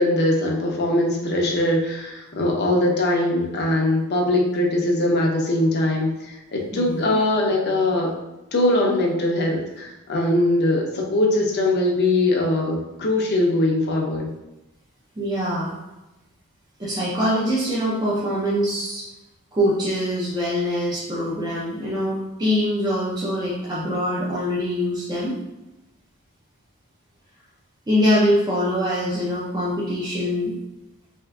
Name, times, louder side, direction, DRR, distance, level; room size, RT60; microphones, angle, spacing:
voice 1, 0.0-8.2 8.5-14.3, left 1 dB, 50° left, 0 dB, 0.6 m, -21 dB
voice 2, 6.7-7.0 15.2-15.7 16.8-19.0 19.5-25.4 27.9-30.5, equal, 20° right, -8 dB, 0.5 m, -23 dB
3.4 x 2.5 x 2.3 m, 0.98 s
head